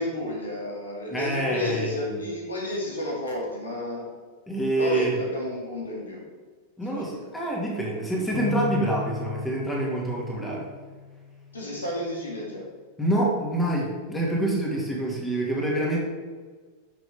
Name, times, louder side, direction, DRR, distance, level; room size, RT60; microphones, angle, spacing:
voice 1, 0.0-4.0 4.7-6.2 6.8-7.3 11.5-12.7 14.7-14.8, left 1 dB, 75° left, -2 dB, 2.3 m, -32 dB
voice 2, 1.1-2.2 4.5-5.2 6.8-10.7 13.0-16.0, right 1 dB, 10° left, -2 dB, 2.3 m, -26 dB
Bass guitar, 8.3-12.8 13.4-14.6, left 7 dB, 35° left, 1.6 m, -38 dB
11.5 x 6.3 x 3.6 m, 1.4 s
figure-of-eight pair, 90°, 0 cm